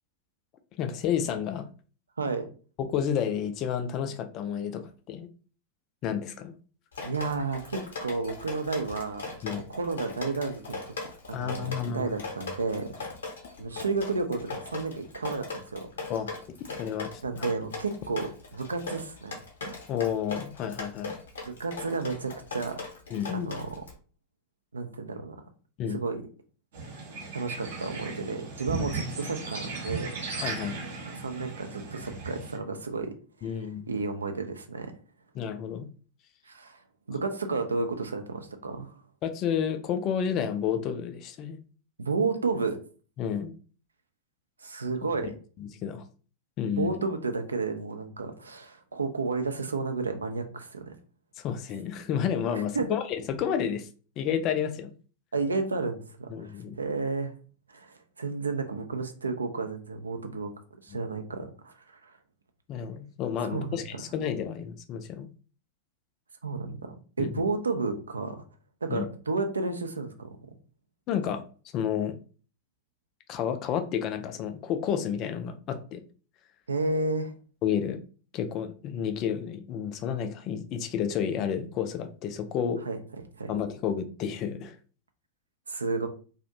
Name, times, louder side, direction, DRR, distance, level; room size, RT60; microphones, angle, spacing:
voice 1, 0.8-1.7 2.8-5.3 6.0-6.5 9.4-9.6 11.3-12.1 16.1-16.3 16.8-17.1 17.4-17.5 19.9-21.1 23.1-23.5 25.8-26.0 28.8-28.9 30.4-30.8 33.4-33.9 35.3-35.9 39.2-41.6 43.2-43.5 45.6-46.0 46.6-47.0 51.4-53.9 54.2-54.9 56.3-56.8 62.7-65.3 67.2-67.4 68.9-69.1 71.1-71.4 71.7-72.1 73.3-76.0 77.6-78.0 78.3-82.8 83.5-84.8, left 8 dB, 35° left, 8 dB, 0.3 m, -30 dB
Drip, 6.9-23.9, left 3 dB, 65° left, 0.7 m, -39 dB
voice 2, 7.0-9.3 9.7-10.9 11.3-12.9 13.6-15.9 17.2-19.4 21.5-22.8 23.3-23.7 24.7-25.4 25.9-26.2 27.3-30.2 31.2-33.1 33.4-33.6 33.9-34.9 36.5-36.8 37.1-39.0 42.0-42.8 44.6-45.3 46.8-50.9 52.5-52.9 55.3-57.4 57.7-60.5 60.8-62.2 63.5-63.8 66.4-68.4 68.8-70.3 76.7-77.3 82.9-83.0 83.4-83.5 85.7-86.1, right 3 dB, 75° right, 7 dB, 0.3 m, -32 dB
sound 1, 26.7-32.6, right 4 dB, 60° right, 0.7 m, -36 dB
2.4 x 2.0 x 2.7 m, 0.39 s
figure-of-eight pair, 90°, 0 cm